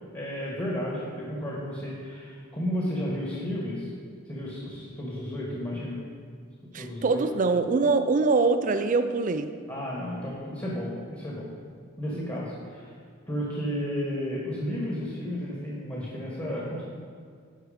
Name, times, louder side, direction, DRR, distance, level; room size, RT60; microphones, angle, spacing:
voice 1, 0.0-3.9 4.3-6.0 6.8-7.2 9.7-11.5 12.0-12.9 13.3-16.8, equal, 20° left, -5 dB, 1.4 m, -33 dB
voice 2, 6.7-9.5 12.1-12.4, right 3 dB, 40° right, 10 dB, 0.4 m, -24 dB
11.0 x 4.7 x 5.0 m, 2.1 s
head